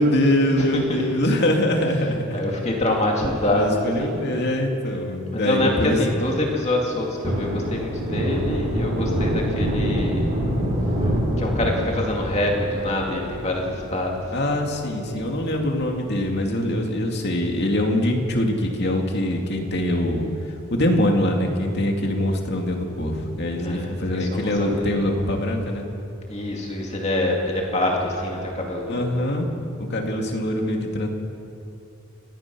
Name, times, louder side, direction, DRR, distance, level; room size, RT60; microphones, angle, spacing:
voice 1, 0.0-2.4 3.4-6.2 14.3-20.3 20.7-25.9 28.9-29.5 29.8-31.1, left 1 dB, 50° left, 2 dB, 2.5 m, -23 dB
voice 2, 0.6-1.1 2.3-4.5 5.3-10.3 11.4-14.3 23.6-25.0 26.3-29.1, left 1 dB, 30° left, -1 dB, 2.4 m, -25 dB
Thunder, 6.8-17.6 17.9-18.0 18.4-19.9 20.2-20.3 20.7-21.5 21.9-22.0 22.3-22.4 24.8-25.3, equal, 30° right, 6.9 m, -27 dB
29.5 x 14.5 x 6.2 m, 2.7 s
head